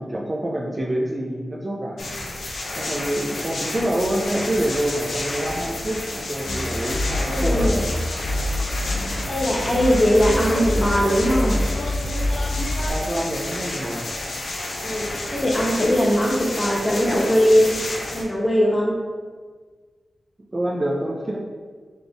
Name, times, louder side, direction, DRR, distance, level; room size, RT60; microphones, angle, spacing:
voice 1, 0.0-2.1 2.8-7.8 12.9-14.1 20.5-21.4, right 1 dB, 30° right, -2 dB, 0.4 m, -26 dB
sound 1, 2.0-18.2, left 2 dB, 85° left, 0.8 m, -31 dB
sound 2, 6.5-12.9, left 1 dB, 60° left, 0.4 m, -26 dB
voice 2, 7.2-7.8 9.3-11.6 14.8-17.8 18.1-19.0, equal, 25° left, -4 dB, 1.1 m, -20 dB
4.1 x 3.4 x 3.4 m, 1.5 s
wide cardioid pair, 100°, 0 cm